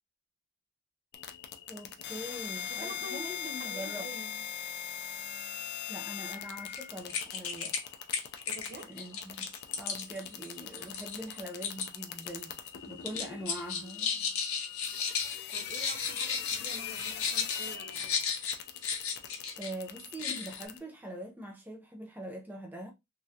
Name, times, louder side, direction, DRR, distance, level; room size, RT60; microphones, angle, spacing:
sound 1, 1.1-20.8, left 9 dB, 50° left, 0.5 m, -41 dB
voice 1, 1.7-4.1 5.9-7.8 8.8-9.5 9.7-14.2 19.6-22.9, right 1 dB, 10° right, 0.5 m, -43 dB
voice 2, 2.7-4.4 8.5-8.9 15.5-18.2, right 2 dB, 45° right, 0.7 m, -47 dB
sound 2, 6.7-6.8 7.1-7.8 8.1-11.9 12.2-12.7 13.0-19.7 20.0-20.6, left 6 dB, 85° left, 0.8 m, -34 dB
3.2 x 2.4 x 2.7 m
head